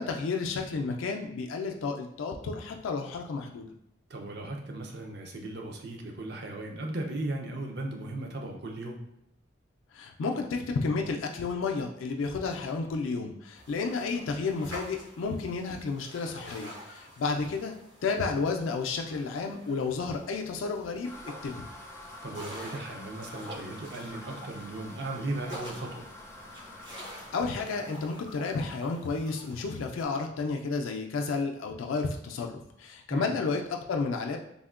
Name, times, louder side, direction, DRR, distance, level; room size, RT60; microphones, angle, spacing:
voice 1, 0.0-3.7 9.9-17.7 18.0-21.1 21.4-21.7 27.0-34.4, left 4 dB, 85° left, 2 dB, 0.4 m, -32 dB
voice 2, 4.1-9.0 22.2-26.1 33.1-33.3, right 2 dB, 55° right, 1 dB, 0.5 m, -37 dB
sound 1, 13.6-30.0, equal, 75° right, 1.0 m, -48 dB
sound 2, 21.0-27.5, left 2 dB, 15° left, 0.3 m, -47 dB
3.5 x 2.1 x 2.4 m, 0.79 s
head